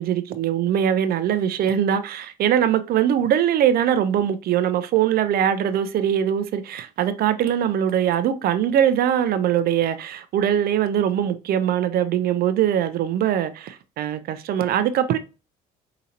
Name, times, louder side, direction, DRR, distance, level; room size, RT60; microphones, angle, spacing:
voice 1, 0.0-15.2, right 10 dB, 65° right, 0.6 m, -22 dB
5.0 x 2.8 x 2.7 m
cardioid pair, 110°, 17 cm